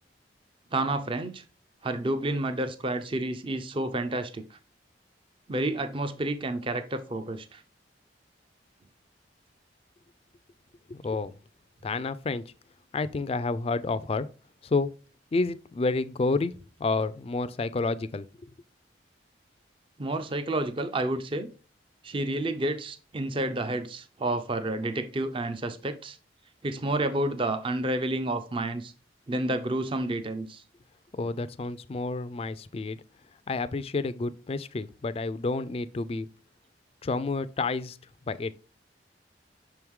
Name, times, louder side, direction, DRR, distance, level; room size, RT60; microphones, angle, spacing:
voice 1, 0.7-1.4 1.8-4.6 5.5-7.6 20.0-21.5 22.0-26.2 26.6-28.9 29.3-30.6, right 2 dB, 30° right, 0.5 m, -30 dB
voice 2, 10.9-11.3 11.8-12.4 12.9-14.3 14.6-14.9 15.3-16.5 16.8-18.5 31.1-33.0 33.5-36.3 37.0-38.0 38.3-38.5, left 3 dB, 30° left, 0.3 m, -29 dB
6.3 x 4.6 x 3.6 m
head